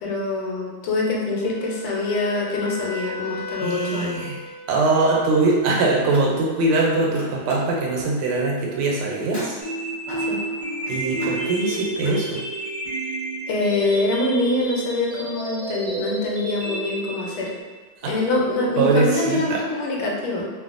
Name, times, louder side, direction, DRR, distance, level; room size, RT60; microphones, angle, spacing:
voice 1, 0.0-4.2 10.2-10.4 13.5-17.5 18.0-20.5, left 2 dB, 85° left, -2 dB, 1.5 m, -24 dB
Wind instrument woodwind instrument, 1.3-5.3, left 3 dB, 65° left, 1.1 m, -35 dB
voice 2, 3.6-9.6 10.9-12.4 18.0-18.1 18.8-19.6 20.0-20.1, right 3 dB, 85° right, -2 dB, 1.5 m, -22 dB
Car, 6.1-6.9 7.1-12.2, equal, 5° left, 0.8 m, -39 dB
sound 1, 9.6-17.6, right 1 dB, 50° right, 0.4 m, -30 dB
3.4 x 2.2 x 2.4 m, 1.4 s
omnidirectional pair, 2.3 m